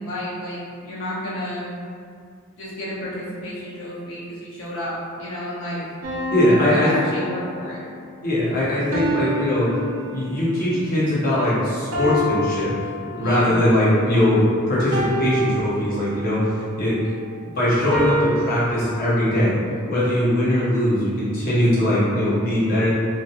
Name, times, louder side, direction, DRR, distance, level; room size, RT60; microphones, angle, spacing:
voice 1, 0.0-1.7 2.6-5.8 6.5-7.9 13.2-13.6, left 1 dB, 75° left, -9 dB, 0.7 m, -31 dB
sound 1, 6.0-7.8 8.9-10.6 11.9-13.6 14.9-16.4 17.9-18.7, equal, 80° right, 0.5 m, -28 dB
voice 2, 6.3-6.9 8.2-9.7 10.1-12.7 13.0-16.5 16.8-17.0 17.6-19.6 19.9-22.9, left 1 dB, 45° left, -9 dB, 0.8 m, -20 dB
2.7 x 2.2 x 2.4 m, 2.2 s
head